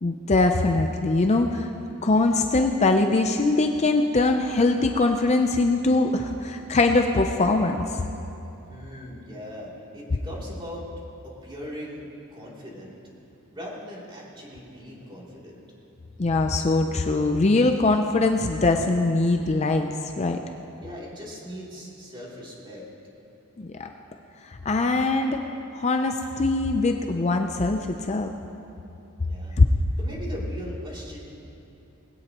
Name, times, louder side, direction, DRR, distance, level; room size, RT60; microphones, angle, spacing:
voice 1, 0.0-1.7 2.0-8.1 16.2-20.4 23.6-23.9 24.4-25.5 25.7-28.3 29.6-29.7, left 2 dB, 30° left, 5 dB, 0.5 m, -22 dB
voice 2, 8.7-10.9 11.2-13.0 13.5-15.6 20.8-22.9 29.3-29.6 30.0-31.3, equal, 20° right, -5 dB, 3.0 m, -39 dB
20.5 x 17.0 x 3.0 m, 2.9 s
head